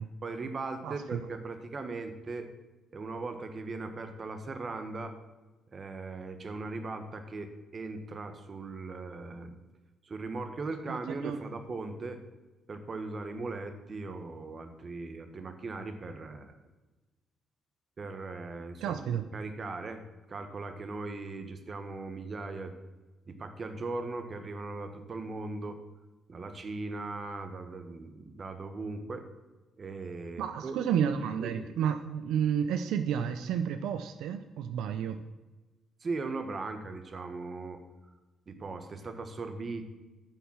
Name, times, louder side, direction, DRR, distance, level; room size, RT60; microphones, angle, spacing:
voice 1, 0.2-2.5 2.9-5.2 5.7-9.6 10.0-12.2 12.7-16.6 18.0-20.0 20.3-22.7 23.3-25.8 26.3-29.3 29.8-30.8 31.4-31.7 36.0-37.8 38.5-39.9, right 3 dB, 40° right, 8 dB, 1.4 m, -39 dB
voice 2, 0.8-1.2 10.9-11.4 18.8-19.3 30.4-35.2, right 8 dB, 85° right, 9 dB, 0.5 m, -31 dB
9.2 x 7.1 x 5.6 m, 1.2 s
cardioid pair, 90°, 0 cm